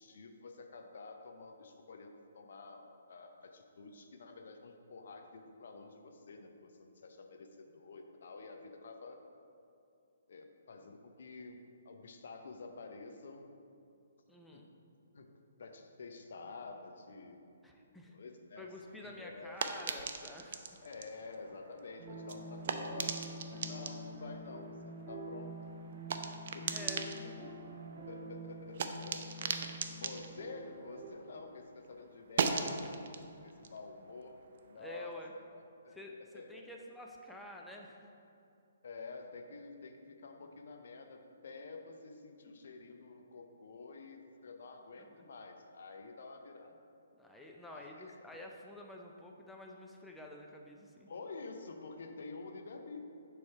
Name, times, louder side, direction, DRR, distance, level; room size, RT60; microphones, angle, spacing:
voice 1, 0.0-9.2 10.3-11.6 11.8-13.5 14.5-14.7 15.1-15.3 15.6-17.4 18.1-19.6 20.8-25.5 26.5-26.9 27.2-27.6 28.1-32.9 33.4-34.4 34.7-36.0 36.3-36.7 38.8-46.8 47.7-48.2 51.1-53.0, left 3 dB, 60° left, 4 dB, 0.6 m, -49 dB
voice 2, 14.3-14.7 17.6-18.2 18.6-20.8 26.7-27.4 34.8-35.3 35.9-38.1 42.5-42.6 45.0-45.2 47.2-51.1, left 1 dB, 5° left, -1 dB, 0.5 m, -49 dB
sound 1, 18.8-31.5 31.8-35.1, right 5 dB, 55° right, 0.4 m, -41 dB
sound 2, 22.0-31.1, right 1 dB, 25° right, 0.9 m, -46 dB
6.9 x 3.2 x 4.5 m, 2.5 s
figure-of-eight pair, 130°, 0 cm